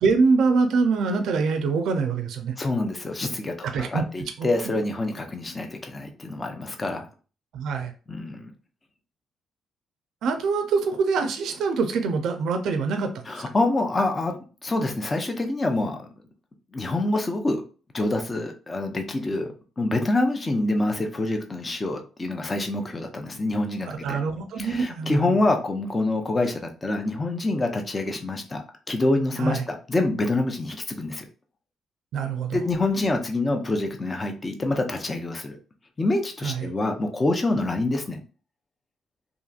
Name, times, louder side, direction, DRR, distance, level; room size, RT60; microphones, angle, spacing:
voice 1, 0.0-2.5 3.6-4.0 4.4-4.5 7.5-7.9 10.2-13.2 23.9-25.4 29.4-29.6 32.1-32.6 36.4-36.7, right 4 dB, 75° right, 6 dB, 0.4 m, -24 dB
voice 2, 2.6-7.1 8.1-8.5 13.3-16.0 16.7-17.6 17.9-24.2 24.6-31.3 32.5-35.6 36.0-38.2, left 2 dB, 25° left, 4 dB, 0.5 m, -26 dB
2.8 x 2.5 x 2.3 m, 0.36 s
cardioid pair, 90°, 0 cm